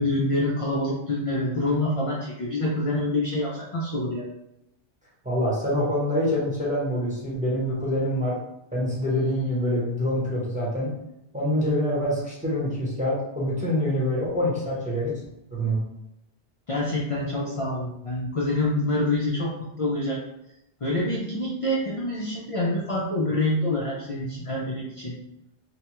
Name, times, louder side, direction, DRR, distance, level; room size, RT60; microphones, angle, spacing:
voice 1, 0.0-4.3 16.7-20.2 20.8-25.2, left 1 dB, 60° left, -5 dB, 0.3 m, -26 dB
voice 2, 5.2-8.4 8.7-10.9 11.3-15.1 15.5-15.8, equal, 10° right, -7 dB, 0.8 m, -25 dB
2.9 x 2.1 x 2.9 m, 0.84 s
omnidirectional pair, 1.1 m